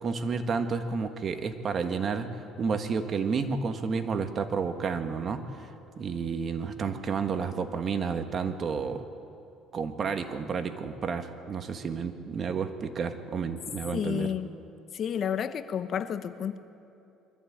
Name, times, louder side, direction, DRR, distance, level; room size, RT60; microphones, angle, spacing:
voice 1, 0.0-5.4 6.0-9.0 9.7-14.3, right 5 dB, 40° right, 7 dB, 1.5 m, -31 dB
voice 2, 13.9-14.5 14.9-16.6, left 8 dB, 50° left, 11 dB, 0.9 m, -31 dB
22.5 x 14.5 x 8.7 m, 2.9 s
cardioid pair, 105°, 0 cm